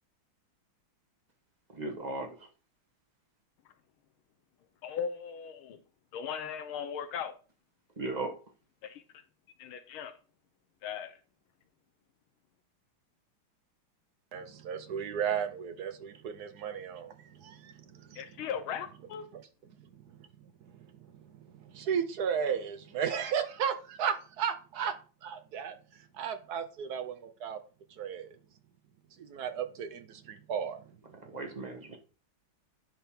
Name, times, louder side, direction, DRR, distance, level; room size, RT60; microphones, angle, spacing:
voice 1, 1.7-2.5 8.0-8.3 31.2-32.0, right 2 dB, 30° right, 0.9 m, -37 dB
voice 2, 4.8-5.8 6.1-7.3 8.8-9.0 9.6-10.1 10.8-11.1 18.1-19.3, left 7 dB, 80° left, 1.6 m, -38 dB
voice 3, 14.3-18.2 20.6-20.7 21.4-24.9 25.2-25.8 26.1-27.6 28.0-28.3 29.2-30.8 31.3-31.4, right 7 dB, 65° right, 1.0 m, -34 dB
10.5 x 3.6 x 4.3 m
omnidirectional pair, 2.3 m